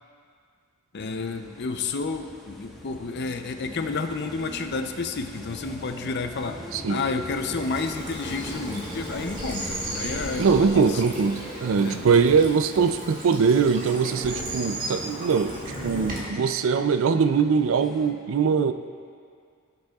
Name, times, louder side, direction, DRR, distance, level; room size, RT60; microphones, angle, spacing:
voice 1, 0.9-6.6 6.9-11.0 11.8-12.0, left 4 dB, 50° left, 7 dB, 0.5 m, -30 dB
sound 1, 1.0-18.1, equal, ahead, 1.2 m, -41 dB
Bird vocalization bird call bird song / Stream, 7.6-16.2, right 1 dB, 40° right, 2.0 m, -36 dB
voice 2, 10.4-15.6 15.8-18.7, right 5 dB, 65° right, 10 dB, 0.4 m, -22 dB
17.0 x 7.6 x 2.4 m, 2.2 s
head